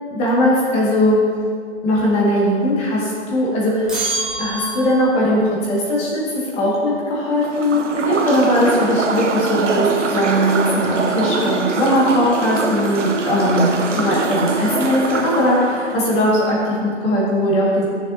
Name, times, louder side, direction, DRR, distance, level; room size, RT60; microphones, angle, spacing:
voice 1, 0.1-1.2 1.8-3.9 4.4-17.8, equal, 15° left, -5 dB, 1.8 m, -19 dB
sound 1, 3.9-5.3, right 2 dB, ahead, 0.6 m, -26 dB
sound 2, 7.4-16.0, right 4 dB, 90° right, 1.0 m, -23 dB
12.5 x 7.3 x 2.7 m, 2.1 s
hypercardioid pair, 150°, 35 cm